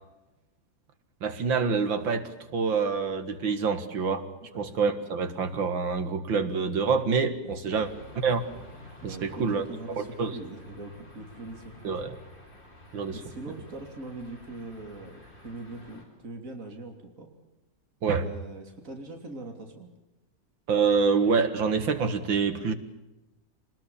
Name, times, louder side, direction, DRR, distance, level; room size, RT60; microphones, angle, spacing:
voice 1, 1.2-4.3 4.6-7.9 8.2-8.4 9.0-9.6 10.0-10.4 11.8-12.1 12.9-13.2 18.0-18.3 20.7-22.7, right 5 dB, 85° right, 10 dB, 2.5 m, -26 dB
voice 2, 7.4-7.8 9.0-12.0 13.1-17.3 18.2-19.9, right 2 dB, 45° right, 3 dB, 3.5 m, -42 dB
sound 1, 7.7-16.1, left 1 dB, 25° left, 5.4 m, -50 dB
25.0 x 20.0 x 7.1 m, 0.99 s
omnidirectional pair, 2.0 m